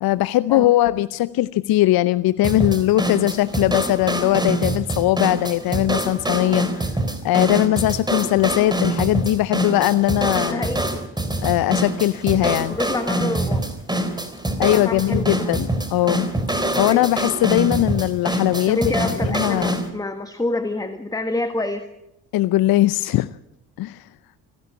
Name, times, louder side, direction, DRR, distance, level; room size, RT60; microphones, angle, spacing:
voice 1, 0.0-6.9 7.2-10.7 11.4-12.8 14.6-19.0 19.2-19.7 22.3-23.3 23.8-24.1, left 15 dB, 50° left, 16 dB, 0.7 m, -20 dB
sound 1, 2.4-19.9, right 1 dB, 10° right, 3.4 m, -25 dB
voice 2, 10.5-11.0 12.7-13.8 14.6-15.6 16.9-17.1 18.7-21.9, left 2 dB, 10° left, 8 dB, 1.6 m, -27 dB
27.5 x 11.0 x 9.6 m, 0.87 s
hypercardioid pair, 50°, 47 cm